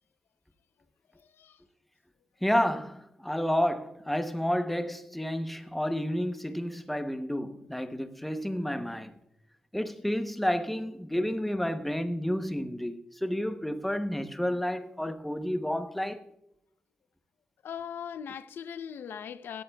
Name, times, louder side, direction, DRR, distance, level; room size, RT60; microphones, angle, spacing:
voice 1, 2.4-9.2 9.7-16.2, equal, 5° left, 0.8 m, -30 dB
voice 2, 17.6-19.6, left 8 dB, 75° left, 0.6 m, -39 dB
16.5 x 13.5 x 2.3 m
wide cardioid pair, 140°, 4 cm